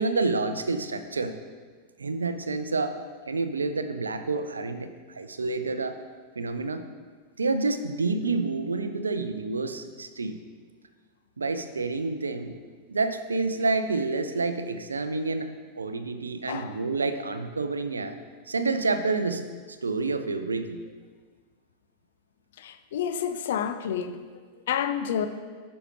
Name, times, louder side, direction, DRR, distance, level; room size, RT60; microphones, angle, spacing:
voice 1, 0.0-1.4 2.0-3.0 3.3-6.0 6.4-6.9 7.4-10.4 11.4-12.6 12.9-18.2 18.5-19.4 19.7-20.8, right 3 dB, 75° right, 10 dB, 0.4 m, -28 dB
voice 2, 16.5-16.8 22.6-24.2 24.7-25.3, left 8 dB, 60° left, 10 dB, 0.4 m, -29 dB
9.6 x 6.2 x 3.1 m, 1.6 s
figure-of-eight pair, 90°, 0 cm